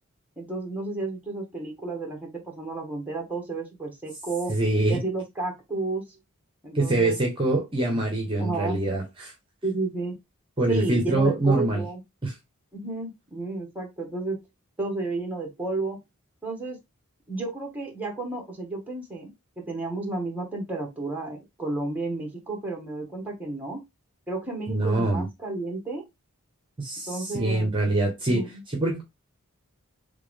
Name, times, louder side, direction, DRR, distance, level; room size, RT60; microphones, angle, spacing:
voice 1, 0.4-4.5 4.9-6.1 6.6-7.2 8.4-8.8 9.6-10.1 10.7-12.0 12.7-14.4 14.8-16.0 16.4-16.8 17.3-23.8 24.3-26.0 27.1-27.7 28.3-28.6, right 2 dB, 5° right, 1.4 m, -32 dB
voice 2, 4.5-5.0 6.7-9.3 10.6-11.8 12.2-12.3 24.7-25.2 26.8-28.4 28.8-29.0, right 2 dB, 25° right, 1.1 m, -24 dB
3.5 x 3.5 x 3.6 m
head